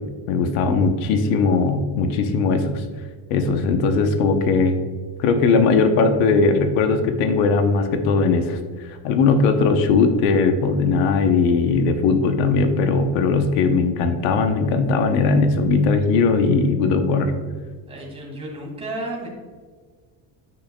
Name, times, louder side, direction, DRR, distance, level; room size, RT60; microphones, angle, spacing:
voice 1, 0.3-2.8 3.3-4.8 5.2-17.3, left 4 dB, 90° left, 7 dB, 0.9 m, -19 dB
voice 2, 17.9-19.3, right 2 dB, 15° right, -3 dB, 2.0 m, -32 dB
9.1 x 6.3 x 2.2 m, 1.6 s
cardioid pair, 175°, 44 cm